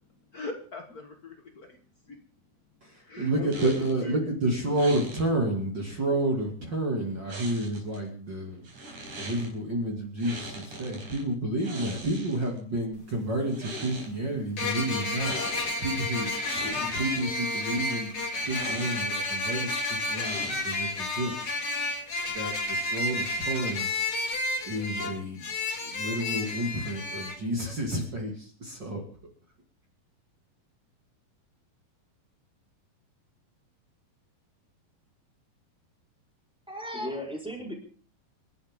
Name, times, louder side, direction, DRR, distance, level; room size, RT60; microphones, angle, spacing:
voice 1, 0.3-1.8 2.1-2.2 3.0-4.3, left 3 dB, 85° left, 3 dB, 0.8 m, -39 dB
voice 2, 2.8-8.6 9.2-15.4 15.8-18.1 18.4-21.3 22.3-23.9 24.6-25.5 25.8-29.0, right 1 dB, 30° right, 1 dB, 2.7 m, -30 dB
sound 1, 3.5-4.0 4.7-5.3 7.3-8.0 8.6-9.5 10.2-11.2 11.6-12.6 13.4-14.1 15.2-15.8 16.2-17.3 18.4-19.2 20.2-20.9, right 1 dB, 50° right, 5.9 m, -41 dB
sound 2, 12.9-13.0 14.6-27.4, left 2 dB, 35° left, 3.1 m, -31 dB
voice 3, 36.7-37.7, equal, ahead, -1 dB, 4.2 m, -35 dB
28.0 x 11.5 x 3.7 m, 0.43 s
omnidirectional pair, 4.3 m